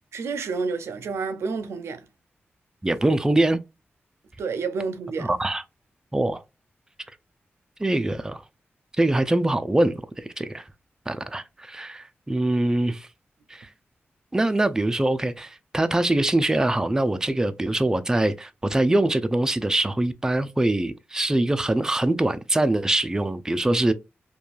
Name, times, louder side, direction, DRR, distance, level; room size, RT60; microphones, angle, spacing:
voice 1, 0.1-2.1 4.4-5.3, right 4 dB, 90° right, 0.5 m, -29 dB
voice 2, 2.8-3.6 5.2-5.6 6.1-6.4 7.8-8.4 9.0-10.7 11.1-13.1 13.5-13.7 14.3-23.9, right 1 dB, 15° right, 0.3 m, -23 dB
2.9 x 2.2 x 2.4 m
cardioid pair, 65°, 4 cm